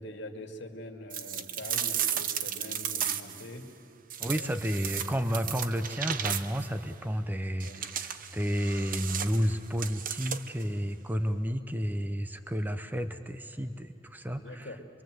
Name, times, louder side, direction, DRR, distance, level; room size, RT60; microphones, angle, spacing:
voice 1, 0.0-3.6 4.2-4.8 7.6-7.9 14.3-14.8, left 1 dB, 65° left, 4 dB, 2.2 m, -44 dB
sound 1, 1.1-3.5 4.1-6.7 7.6-10.6, right 9 dB, 45° right, 0.8 m, -34 dB
voice 2, 4.2-14.7, equal, 10° right, 9 dB, 0.7 m, -31 dB
25.0 x 24.0 x 7.8 m, 2.6 s
head